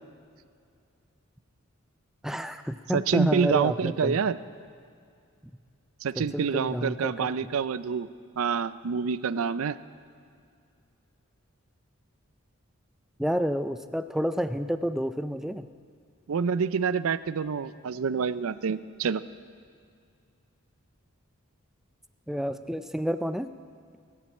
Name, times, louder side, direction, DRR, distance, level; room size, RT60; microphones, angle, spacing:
voice 1, 2.2-4.2 6.2-7.5 13.2-15.7 22.3-23.5, equal, ahead, 11 dB, 0.3 m, -30 dB
voice 2, 2.9-4.4 6.0-8.1 8.4-9.8 16.3-19.2, right 6 dB, 80° right, 16 dB, 0.5 m, -27 dB
20.5 x 7.5 x 8.2 m, 2.3 s
head